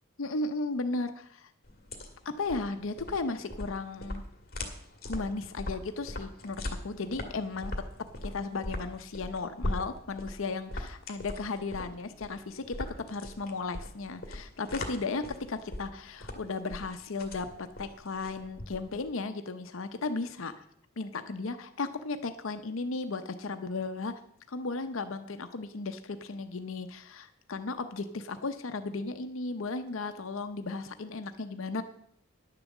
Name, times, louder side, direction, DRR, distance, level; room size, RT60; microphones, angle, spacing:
voice 1, 0.2-1.5 2.2-4.2 5.0-7.7 8.2-20.5 21.0-24.1 24.5-31.8, left 3 dB, 70° left, 9 dB, 0.7 m, -35 dB
sound 1, 1.6-19.1, left 1 dB, 45° left, 1.7 m, -40 dB
10.5 x 6.8 x 7.2 m, 0.70 s
head